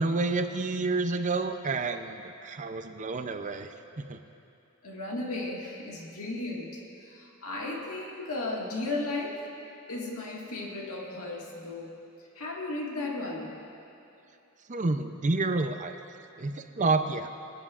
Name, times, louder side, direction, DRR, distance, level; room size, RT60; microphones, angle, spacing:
voice 1, 0.0-4.2 14.7-16.0 16.4-17.3, right 3 dB, 35° right, 7 dB, 0.5 m, -29 dB
voice 2, 4.8-6.8 7.1-9.4 9.9-12.0 12.4-13.6, left 2 dB, 80° left, -2 dB, 1.9 m, -35 dB
26.5 x 9.7 x 2.5 m, 2.7 s
head